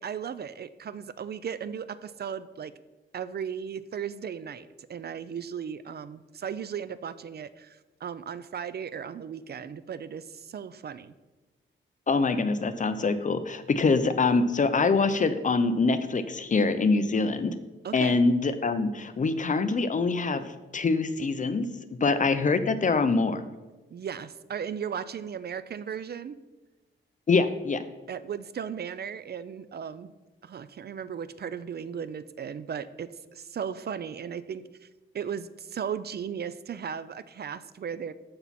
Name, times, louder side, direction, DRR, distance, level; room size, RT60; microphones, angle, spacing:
voice 1, 0.0-2.7 3.1-11.1 17.8-18.2 23.9-26.4 28.1-30.1 30.4-34.9 35.1-38.1, right 7 dB, 50° right, 14 dB, 0.4 m, -36 dB
voice 2, 12.1-17.5 17.9-21.7 22.0-23.4 27.3-27.8, left 4 dB, 35° left, 10 dB, 0.7 m, -24 dB
14.5 x 5.8 x 4.2 m, 1.2 s
wide cardioid pair, 130°, 21 cm